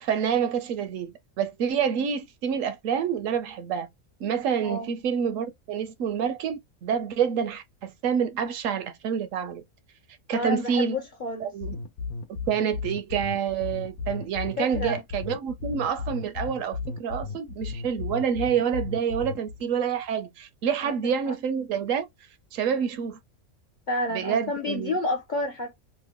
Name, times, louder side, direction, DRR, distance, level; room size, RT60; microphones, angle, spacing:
voice 1, 0.0-3.9 4.2-9.6 10.3-11.0 11.4-11.8 12.3-22.1 22.5-23.2 24.1-25.0, right 7 dB, 70° right, 0.9 m, -28 dB
voice 2, 10.3-11.5 14.6-15.0 20.8-20.9 21.3-21.4 23.9-25.7, left 1 dB, 50° left, 0.6 m, -30 dB
sound 1, 11.6-19.6, left 4 dB, 80° left, 1.1 m, -34 dB
3.0 x 2.1 x 3.5 m
omnidirectional pair, 1.5 m